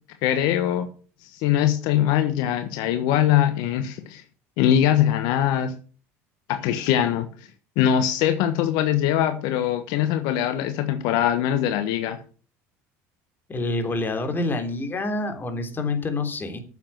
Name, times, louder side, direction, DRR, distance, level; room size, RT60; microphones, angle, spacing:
voice 1, 0.2-0.9 1.2-4.2 4.6-5.7 6.5-7.3 7.8-12.2, left 10 dB, 75° left, 8 dB, 1.3 m, -22 dB
voice 2, 13.5-16.6, left 2 dB, 30° left, 6 dB, 3.4 m, -27 dB
9.4 x 7.3 x 7.7 m, 0.39 s
supercardioid pair, 90°, 7 cm